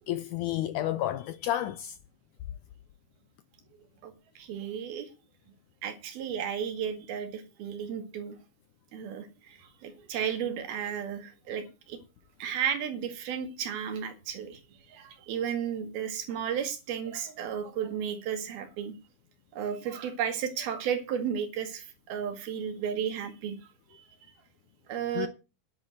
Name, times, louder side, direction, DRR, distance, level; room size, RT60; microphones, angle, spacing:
voice 1, 0.1-2.0 25.2-25.3, left 13 dB, 80° left, 1.8 m, -31 dB
voice 2, 4.0-5.1 5.8-8.4 8.9-12.0 12.4-14.6 14.9-19.0 19.5-23.6 23.9-24.1 24.9-25.3, right 8 dB, 80° right, 3.8 m, -33 dB
11.0 x 7.4 x 7.6 m
omnidirectional pair, 4.3 m